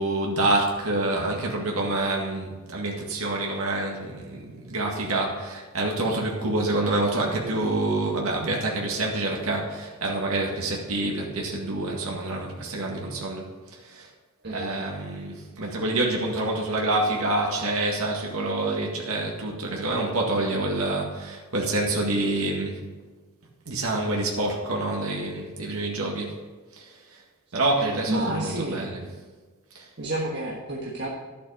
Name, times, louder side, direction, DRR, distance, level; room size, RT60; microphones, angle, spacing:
voice 1, 0.0-13.5 14.5-22.8 23.7-26.3 27.5-29.0, right 2 dB, 85° right, -1 dB, 1.9 m, -27 dB
voice 2, 27.7-28.8 30.0-31.1, right 1 dB, 55° right, -4 dB, 1.4 m, -30 dB
11.5 x 8.2 x 5.1 m, 1.3 s
head